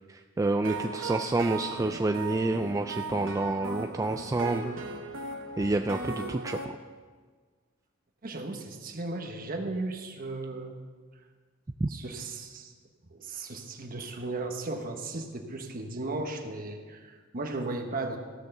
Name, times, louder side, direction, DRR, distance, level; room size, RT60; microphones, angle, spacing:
voice 1, 0.1-4.7 5.6-6.8 11.8-11.9, right 2 dB, 15° right, 6 dB, 0.3 m, -28 dB
sound 1, 0.6-6.7, right 3 dB, 65° right, 1.0 m, -37 dB
voice 2, 8.2-10.7 11.9-12.7 13.1-18.2, right 2 dB, 45° right, 4 dB, 1.3 m, -36 dB
15.0 x 6.5 x 6.6 m, 1.5 s
head